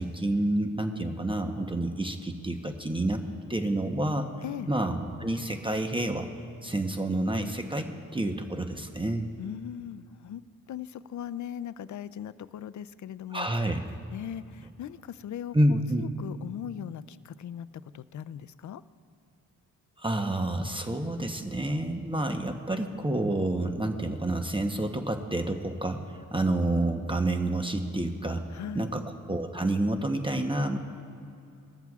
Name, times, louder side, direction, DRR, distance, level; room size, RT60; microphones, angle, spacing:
voice 1, 0.0-3.2 3.5-4.3 4.7-6.3 6.6-9.2 13.3-13.8 15.5-16.0 20.0-28.4 28.7-30.8, right 1 dB, 15° right, 5 dB, 0.9 m, -29 dB
voice 2, 9.4-10.4 10.7-13.5 14.1-17.7 17.9-18.8 28.5-28.9, left 10 dB, 55° left, 15 dB, 0.5 m, -39 dB
20.0 x 14.0 x 2.4 m, 2.6 s
cardioid pair, 75°, 36 cm